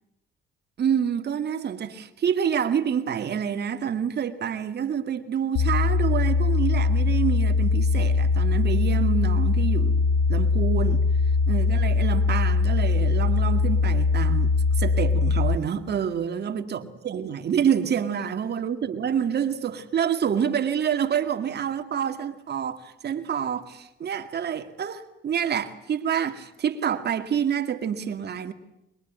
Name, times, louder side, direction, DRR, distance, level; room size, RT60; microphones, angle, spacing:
voice 1, 0.8-11.0 11.5-14.5 14.8-28.5, right 8 dB, 55° right, 2.3 m, -27 dB
sound 1, 5.6-15.6, left 4 dB, 85° left, 1.3 m, -21 dB
25.0 x 22.5 x 9.5 m
cardioid pair, 90°, 20 cm